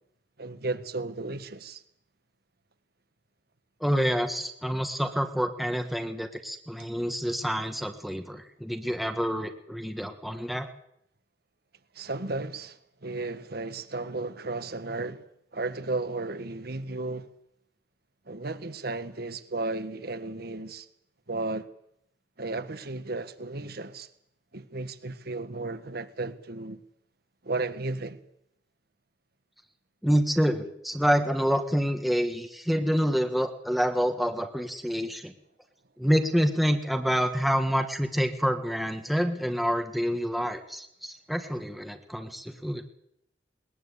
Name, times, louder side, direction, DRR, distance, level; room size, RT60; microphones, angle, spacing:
voice 1, 0.4-1.8 11.9-15.3 15.5-17.3 18.3-20.9 21.3-21.7 22.4-24.1 24.5-26.8 27.4-28.2, right 3 dB, 60° right, 1.5 m, -34 dB
voice 2, 3.8-10.7 30.0-35.3 36.0-42.8, equal, ahead, 1.4 m, -27 dB
20.5 x 20.5 x 8.3 m
head